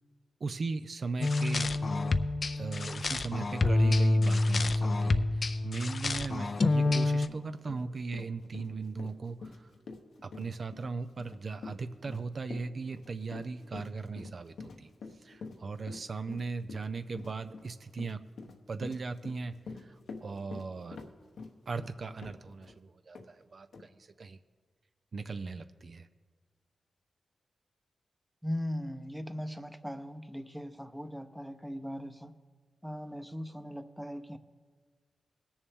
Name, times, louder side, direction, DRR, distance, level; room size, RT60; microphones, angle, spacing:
voice 1, 0.4-1.8 2.5-9.7 10.2-14.9 15.2-18.2 18.7-21.0 21.7-24.4 25.1-26.1, right 4 dB, 60° right, 10 dB, 0.4 m, -38 dB
sound 1, 1.2-7.3, left 2 dB, 55° left, 0.5 m, -27 dB
Run, 6.4-6.5 6.8-22.8 23.1-23.3 23.7-23.9, left 4 dB, 85° left, 1.0 m, -46 dB
voice 2, 28.4-32.3 32.8-34.4, equal, ahead, 9 dB, 0.7 m, -39 dB
20.0 x 7.0 x 3.6 m, 1.5 s
cardioid pair, 55°, 0 cm